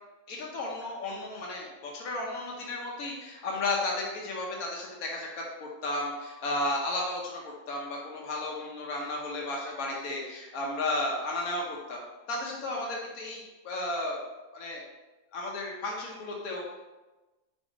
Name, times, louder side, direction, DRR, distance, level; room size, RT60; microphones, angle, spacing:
voice 1, 0.3-7.4 7.7-12.0 12.3-14.2 14.5-14.8 15.3-16.7, left 2 dB, 85° left, -2 dB, 1.4 m, -33 dB
4.9 x 4.1 x 5.0 m, 1.1 s
omnidirectional pair, 1.5 m